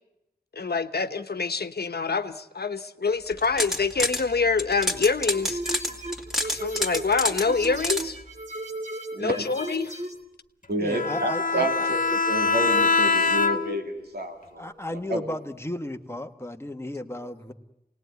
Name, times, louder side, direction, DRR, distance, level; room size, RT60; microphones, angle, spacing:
voice 1, 0.5-5.6 6.4-8.2 9.2-9.9, left 4 dB, 90° left, 9 dB, 1.1 m, -26 dB
sound 1, 3.3-4.2 4.6-8.0, left 1 dB, 5° right, 2.7 m, -27 dB
sound 2, 5.3-10.2, right 2 dB, 45° right, 2.7 m, -36 dB
voice 2, 9.1-9.4 10.7-15.2 17.2-17.3, right 1 dB, 90° right, 3 dB, 2.6 m, -30 dB
voice 3, 10.8-11.7 14.6-17.5, left 1 dB, 15° left, 5 dB, 1.5 m, -34 dB
Bowed string instrument, 10.9-13.9, left 4 dB, 55° left, 1.6 m, -23 dB
28.0 x 19.0 x 9.5 m, 0.90 s
wide cardioid pair, 75°, 16 cm